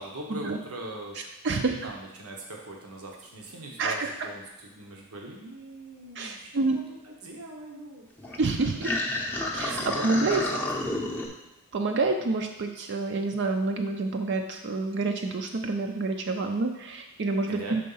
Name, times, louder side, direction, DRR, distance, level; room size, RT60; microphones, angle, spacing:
voice 1, 0.0-1.2 1.6-8.0 9.7-10.9 17.5-17.8, right 1 dB, 80° right, 0 dB, 1.0 m, -41 dB
voice 2, 1.2-1.9 3.8-4.3 6.2-6.8 8.4-9.0 9.5-10.4 11.7-17.8, right 3 dB, 50° right, 4 dB, 0.5 m, -28 dB
sound 1, 8.2-11.3, left 1 dB, 10° left, 0.6 m, -31 dB
5.4 x 3.8 x 5.5 m, 1.0 s
head